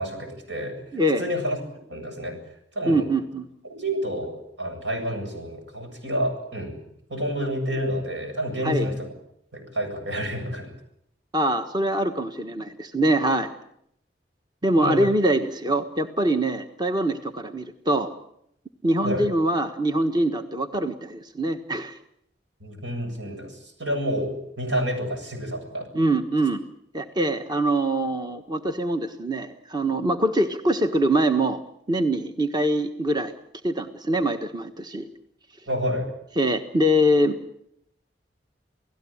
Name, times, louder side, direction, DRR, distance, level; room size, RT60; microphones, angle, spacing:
voice 1, 0.0-0.8 1.2-1.6 1.9-2.4 2.7-3.1 3.7-6.8 7.1-9.1 9.5-10.7 14.8-15.1 19.0-19.3 22.6-25.9 35.7-36.1, equal, 85° right, 5 dB, 8.0 m, -29 dB
voice 2, 0.9-1.2 2.9-3.4 8.6-8.9 11.3-13.5 14.6-18.1 18.8-22.0 25.9-26.6 26.9-31.6 31.9-33.3 33.6-35.1 36.4-37.4, right 1 dB, 25° right, 7 dB, 1.4 m, -23 dB
29.0 x 17.5 x 8.7 m, 0.75 s
head